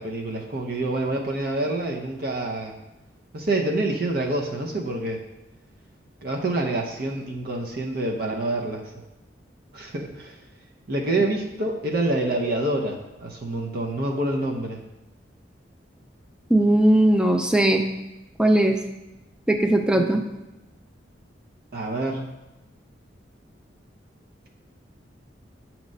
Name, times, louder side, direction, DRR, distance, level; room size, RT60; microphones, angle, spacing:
voice 1, 0.0-2.8 3.3-5.2 6.2-8.9 9.7-10.4 10.9-14.8 21.7-22.3, right 2 dB, 55° right, 1 dB, 0.7 m, -27 dB
voice 2, 16.5-17.8 18.4-18.8 19.5-20.2, right 1 dB, 5° right, 5 dB, 0.4 m, -18 dB
7.4 x 3.0 x 5.3 m, 1.0 s
head